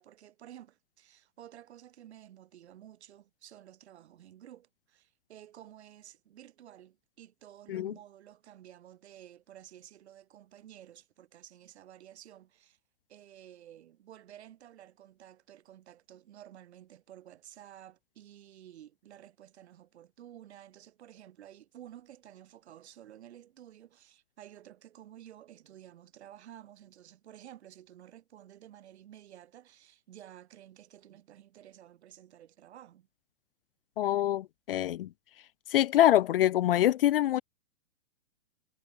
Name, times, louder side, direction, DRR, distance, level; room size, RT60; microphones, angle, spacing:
voice 1, 0.0-12.8 13.1-33.1, right 11 dB, 60° right, 4.1 m, -53 dB
voice 2, 34.0-35.1 35.7-37.4, left 12 dB, 50° left, 0.4 m, -25 dB
hypercardioid pair, 165°, 37 cm